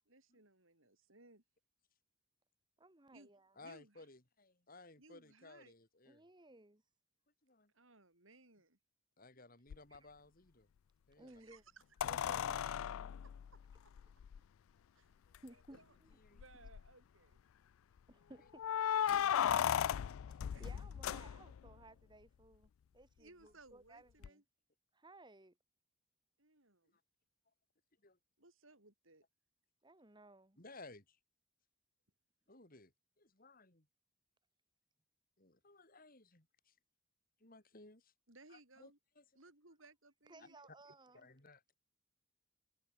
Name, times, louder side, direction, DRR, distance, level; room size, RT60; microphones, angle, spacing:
voice 1, 0.1-1.4 3.1-3.3 3.6-4.1 5.0-5.7 7.7-8.8 11.3-11.8 13.2-13.9 15.0-15.1 15.5-16.0 16.3-17.4 18.8-19.5 20.5-20.8 23.2-24.4 26.4-27.0 28.4-29.2 38.3-39.0 39.4-40.6 40.8-40.9, right 3 dB, 75° right, 7.4 m, -63 dB
voice 2, 2.8-3.5 6.1-6.8 9.9-10.1 11.2-11.6 12.0-12.9 15.4-15.8 18.1-18.7 20.3-24.4 24.9-25.5 29.8-30.6 40.3-41.3, right 2 dB, 20° right, 1.8 m, -59 dB
voice 3, 3.6-6.2 7.4-7.7 9.2-10.7 11.1-11.4 16.2-16.4 28.0-28.2 30.6-31.2 32.5-32.9 33.2-33.9 35.4-36.7 37.4-38.1 38.5-38.9 39.2-39.3 40.4-40.5 41.1-41.7, left 3 dB, 45° left, 3.9 m, -58 dB
sound 1, 9.7-9.8 12.0-14.4 15.3-15.4 15.7-15.8 16.4-16.9 18.6-21.7 24.2-24.3, left 9 dB, 85° left, 0.3 m, -36 dB
head